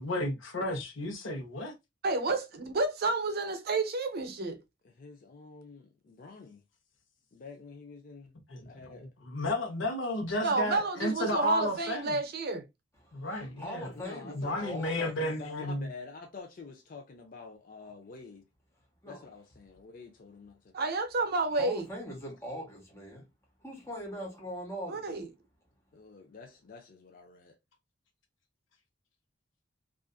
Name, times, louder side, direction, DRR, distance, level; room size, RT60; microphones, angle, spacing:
voice 1, 0.0-1.7 8.5-9.0 9.2-12.2 13.1-13.9 14.3-15.9, left 1 dB, 80° left, 0.8 m, -33 dB
voice 2, 2.0-4.6 10.4-12.6 20.7-21.9 24.9-25.3, right 3 dB, 55° right, 0.6 m, -30 dB
voice 3, 4.8-6.6 7.3-8.4 8.6-9.1 13.9-18.4 19.0-20.7 25.9-27.6, left 4 dB, 50° left, 0.5 m, -48 dB
voice 4, 13.0-15.1 19.0-19.2 21.5-23.2 23.6-25.1, equal, 15° left, 0.9 m, -41 dB
2.5 x 2.4 x 2.3 m
head